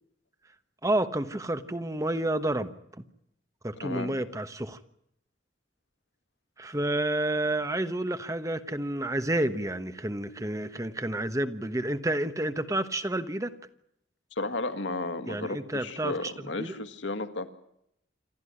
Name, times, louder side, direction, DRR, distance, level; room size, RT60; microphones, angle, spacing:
voice 1, 0.8-3.0 3.6-4.8 6.6-13.5 15.3-16.3 16.6-16.8, right 1 dB, 15° right, 11 dB, 1.1 m, -30 dB
voice 2, 3.8-4.1 14.3-17.5, left 2 dB, 80° left, 8 dB, 2.1 m, -33 dB
27.5 x 13.0 x 9.9 m, 0.76 s
head